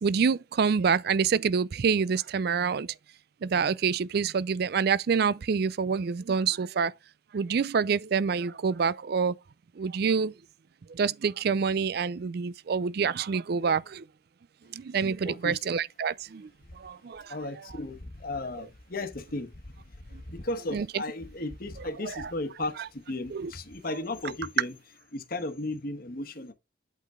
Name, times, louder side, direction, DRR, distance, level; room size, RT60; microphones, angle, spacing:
voice 1, 0.0-2.9 3.4-6.9 7.3-9.4 9.8-10.3 10.9-14.0 14.7-16.5 16.8-17.4 20.7-20.9 22.1-22.3 23.3-23.5, right 6 dB, 55° right, 0.4 m, -27 dB
voice 2, 15.2-15.6 17.3-24.7 25.1-26.5, left 2 dB, 50° left, 1.2 m, -35 dB
8.4 x 3.8 x 3.6 m
head